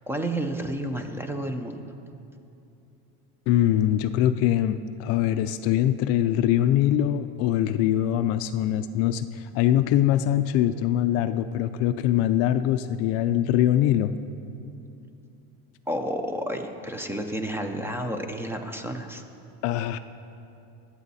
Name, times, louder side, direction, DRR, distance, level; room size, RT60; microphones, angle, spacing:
voice 1, 0.1-1.8 15.9-19.2, right 1 dB, 5° right, 6 dB, 0.5 m, -31 dB
voice 2, 3.5-14.1 19.6-20.0, left 11 dB, 50° left, 11 dB, 0.4 m, -23 dB
21.0 x 8.2 x 4.1 m, 2.7 s
cardioid pair, 155°, 32 cm